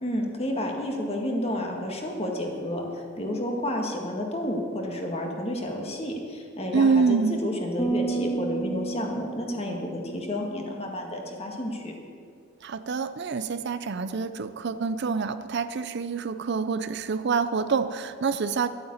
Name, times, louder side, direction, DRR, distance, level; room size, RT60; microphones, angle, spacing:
voice 1, 0.0-11.9, left 1 dB, 30° left, 1 dB, 1.9 m, -31 dB
voice 2, 6.7-7.4 12.6-18.7, right 5 dB, 55° right, 12 dB, 0.5 m, -26 dB
sound 1, 7.8-11.2, right 3 dB, 10° left, 1.5 m, -32 dB
12.5 x 8.8 x 8.7 m, 2.3 s
head